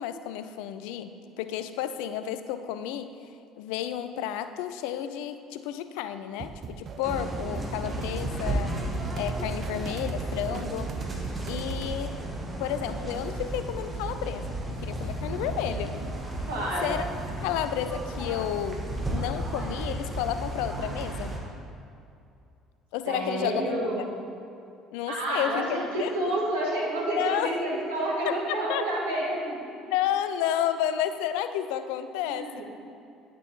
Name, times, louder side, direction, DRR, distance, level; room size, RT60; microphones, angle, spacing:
voice 1, 0.0-3.1 3.6-8.8 9.1-11.0 11.5-12.2 12.6-16.0 16.8-17.0 17.4-21.4 22.9-24.1 24.9-26.4 27.2-27.6 28.3-28.8 29.9-32.6, left 10 dB, 60° left, 11 dB, 0.3 m, -31 dB
sound 1, 6.4-12.0, right 5 dB, 40° right, 0.4 m, -38 dB
sound 2, 7.0-21.4, right 1 dB, 20° right, 1.4 m, -34 dB
voice 2, 16.5-16.9 23.0-24.1 25.1-29.5 32.2-32.6, right 1 dB, 70° right, -5 dB, 1.7 m, -29 dB
9.7 x 8.3 x 3.0 m, 2.6 s
figure-of-eight pair, 55°, 0 cm